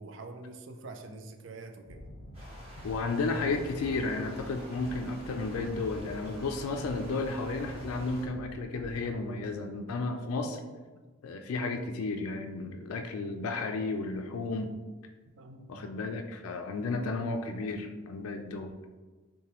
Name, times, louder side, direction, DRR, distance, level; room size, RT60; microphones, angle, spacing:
voice 1, 0.0-2.0 15.4-15.9, right 3 dB, 60° right, 5 dB, 0.4 m, -45 dB
sound 1, 1.9-9.5, equal, 60° left, 0.7 m, -46 dB
sound 2, 2.3-8.2, equal, 30° right, 1.2 m, -50 dB
voice 2, 2.8-10.6 11.2-14.7 15.7-18.7, left 3 dB, 90° left, 5 dB, 0.4 m, -33 dB
5.7 x 2.2 x 3.0 m, 1.3 s
head